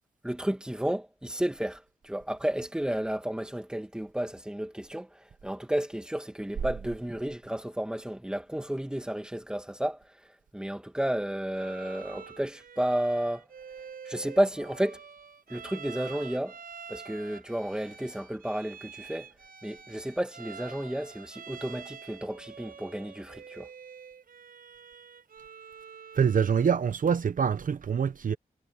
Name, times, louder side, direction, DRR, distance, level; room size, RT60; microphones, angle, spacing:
voice 1, 0.2-13.5 14.1-15.0 15.5-16.6 16.9-19.3 19.6-23.7, right 1 dB, 5° right, 2.1 m, -32 dB
Bowed string instrument, 11.5-26.8, right 7 dB, 85° right, 4.9 m, -47 dB
voice 2, 26.2-28.4, right 7 dB, 65° right, 0.8 m, -25 dB
wide cardioid pair, 150°, 15 cm